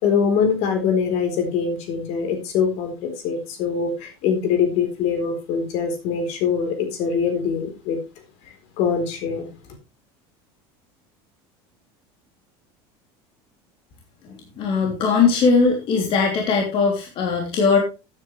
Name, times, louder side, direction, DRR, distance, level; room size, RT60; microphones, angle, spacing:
voice 1, 0.0-8.0 8.8-9.5, left 6 dB, 60° left, 5 dB, 4.0 m, -23 dB
voice 2, 14.6-17.8, left 5 dB, 45° left, 0 dB, 3.2 m, -19 dB
13.5 x 9.8 x 3.3 m, 0.30 s
cardioid pair, 145°, 13 cm